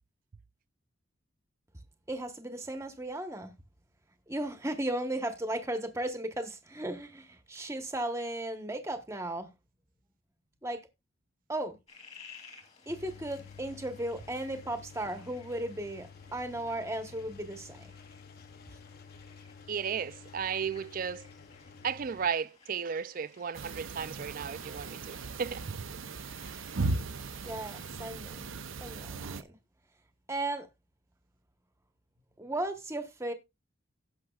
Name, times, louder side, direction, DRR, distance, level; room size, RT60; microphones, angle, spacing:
voice 1, 2.1-3.5 4.3-9.5 10.6-10.8 11.5-11.8 12.9-17.9 27.4-28.5 28.8-29.6 30.3-30.7 32.4-33.3, right 1 dB, 15° right, 1.1 m, -36 dB
sound 1, 11.9-28.0, left 5 dB, 30° left, 2.8 m, -58 dB
Engine, 12.9-22.3, left 5 dB, 50° left, 0.7 m, -51 dB
voice 2, 19.7-21.3 21.8-25.6 26.5-26.6, right 7 dB, 45° right, 0.4 m, -34 dB
sound 2, 23.5-29.4, right 3 dB, 75° right, 0.7 m, -37 dB
17.0 x 6.1 x 2.4 m
head